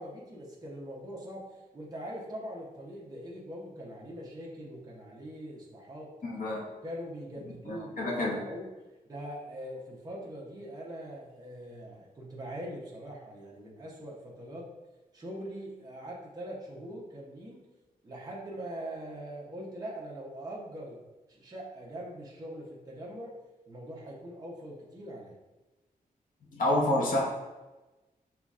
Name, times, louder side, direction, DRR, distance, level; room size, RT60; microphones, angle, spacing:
voice 1, 0.0-1.4 1.7-6.1 6.8-8.7 9.1-14.7 15.1-17.6 18.0-21.0 21.3-23.3 23.7-25.4, right 1 dB, 25° right, -5 dB, 0.8 m, -42 dB
voice 2, 6.2-6.6 7.7-8.4 26.5-27.3, left 1 dB, 60° left, -3 dB, 0.9 m, -28 dB
5.7 x 3.1 x 2.4 m, 1.1 s
wide cardioid pair, 175°, 15 cm